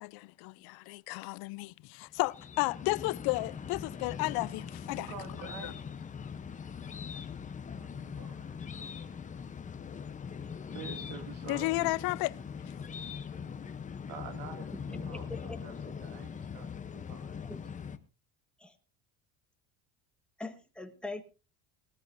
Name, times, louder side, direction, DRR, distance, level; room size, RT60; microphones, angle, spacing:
voice 1, 0.0-5.1 5.6-5.7 11.5-12.3, left 23 dB, 70° left, 0.6 m, -33 dB
sound 1, 2.1-18.0, left 6 dB, 20° left, 0.8 m, -41 dB
voice 2, 4.9-5.9 7.8-9.2 10.3-12.0 13.7-13.8 14.1-17.5, right 6 dB, 75° right, 2.5 m, -48 dB
voice 3, 14.9-15.6 17.5-17.6 18.6-18.8 20.4-21.2, left 2 dB, ahead, 1.5 m, -42 dB
20.0 x 13.5 x 2.6 m
cardioid pair, 145°, 39 cm